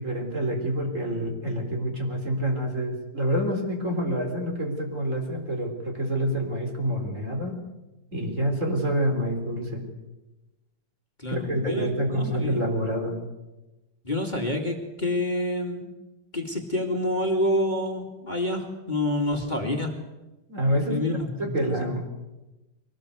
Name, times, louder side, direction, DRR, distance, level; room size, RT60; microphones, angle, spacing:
voice 1, 0.0-7.6 8.1-9.8 11.3-13.2 20.5-21.0 21.4-22.0, equal, 40° right, 2 dB, 4.3 m, -27 dB
voice 2, 11.2-12.6 14.0-15.9 16.3-19.9 20.9-21.3 21.6-21.9, left 1 dB, 25° left, 2 dB, 2.5 m, -28 dB
23.5 x 18.5 x 8.2 m, 1.0 s
omnidirectional pair, 2.0 m